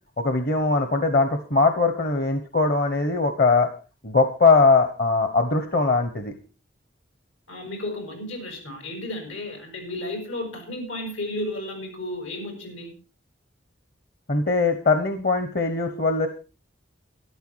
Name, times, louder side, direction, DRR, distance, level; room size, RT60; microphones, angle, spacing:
voice 1, 0.2-3.7 4.0-6.3 14.3-16.3, left 3 dB, 50° left, 8 dB, 1.2 m, -21 dB
voice 2, 7.5-12.9, left 1 dB, 85° left, 4 dB, 6.6 m, -33 dB
13.0 x 12.0 x 4.7 m, 0.34 s
head